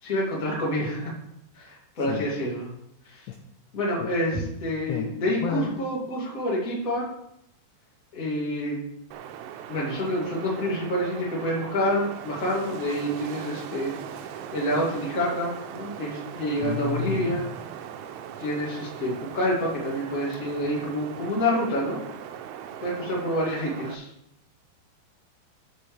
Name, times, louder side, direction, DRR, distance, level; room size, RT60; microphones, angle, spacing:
voice 1, 0.0-1.1 1.5-2.7 3.0-3.3 3.7-7.1 8.1-8.8 9.7-13.9 14.5-17.5 18.4-22.0 22.8-24.1, equal, 25° left, -4 dB, 2.2 m, -27 dB
voice 2, 5.4-5.8 16.6-17.4, left 10 dB, 80° left, 3 dB, 2.5 m, -31 dB
Wind, 9.1-24.0, right 9 dB, 90° right, 3.3 m, -40 dB
13.5 x 7.7 x 3.5 m, 0.79 s
omnidirectional pair, 5.5 m